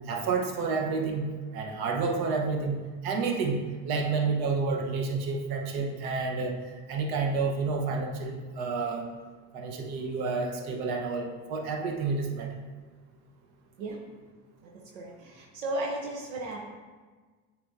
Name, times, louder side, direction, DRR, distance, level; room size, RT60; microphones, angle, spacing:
voice 1, 0.1-1.3 1.5-2.8 3.0-6.6 6.9-9.1 9.5-12.6, right 4 dB, 65° right, 2 dB, 1.1 m, -29 dB
voice 2, 14.6-16.6, right 1 dB, 90° right, -1 dB, 0.9 m, -35 dB
8.6 x 4.8 x 2.6 m, 1.4 s
supercardioid pair, 80°, 39 cm